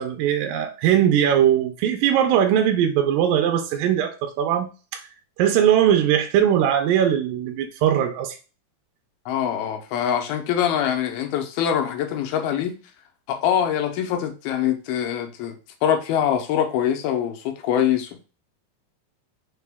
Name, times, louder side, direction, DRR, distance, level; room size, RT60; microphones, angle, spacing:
voice 1, 0.0-5.0 5.4-8.4, right 9 dB, 80° right, 2.1 m, -20 dB
voice 2, 9.3-12.8 13.3-15.6 15.8-18.2, left 9 dB, 80° left, 2.5 m, -24 dB
5.7 x 2.2 x 3.4 m
omnidirectional pair, 4.3 m